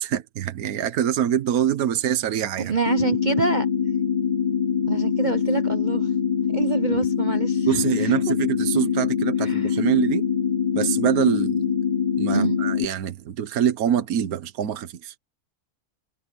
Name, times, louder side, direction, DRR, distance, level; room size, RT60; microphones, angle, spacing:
voice 1, 0.0-2.8 7.7-10.3 10.7-11.7 12.2-15.1, right 10 dB, 70° right, 1.4 m, -24 dB
voice 2, 2.6-3.7 4.9-6.1 6.5-8.1 9.4-9.7 12.3-12.6, right 5 dB, 40° right, 0.7 m, -27 dB
sound 1, 2.9-12.9, left 7 dB, 50° left, 0.5 m, -24 dB
omnidirectional pair, 1.6 m